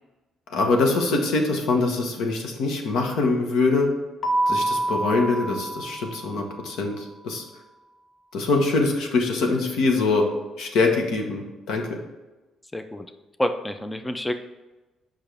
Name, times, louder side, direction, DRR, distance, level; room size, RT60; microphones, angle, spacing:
voice 1, 0.5-3.9 4.5-7.4 8.3-10.3 10.6-12.0, left 3 dB, 80° left, 2 dB, 1.3 m, -23 dB
Keyboard (musical), 4.2-6.8, right 1 dB, 30° left, 0.8 m, -27 dB
voice 2, 12.7-13.1 13.4-14.3, left 1 dB, 10° left, 8 dB, 0.4 m, -28 dB
8.0 x 5.5 x 3.4 m, 1.1 s
cardioid pair, 145°, 0 cm